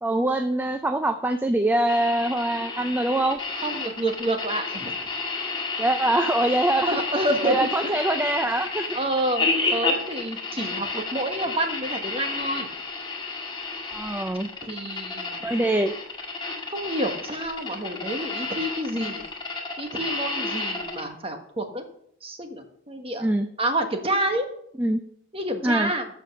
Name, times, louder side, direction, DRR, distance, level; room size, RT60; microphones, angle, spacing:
voice 1, 0.0-3.4 5.8-7.0 7.4-8.9 13.9-14.5 15.4-15.9 23.2-23.5 24.8-25.0 25.6-25.9, right 1 dB, 10° right, 8 dB, 0.4 m, -23 dB
sound 1, 1.9-21.0, left 3 dB, 20° left, 2.0 m, -31 dB
voice 2, 3.6-4.9 6.1-6.2 6.8-8.1 8.9-12.7 14.6-15.4 16.7-19.2 19.8-21.8 22.2-23.3 23.6-24.4 25.3-26.1, right 1 dB, 25° right, 5 dB, 1.3 m, -28 dB
14.0 x 5.2 x 6.4 m, 0.72 s
head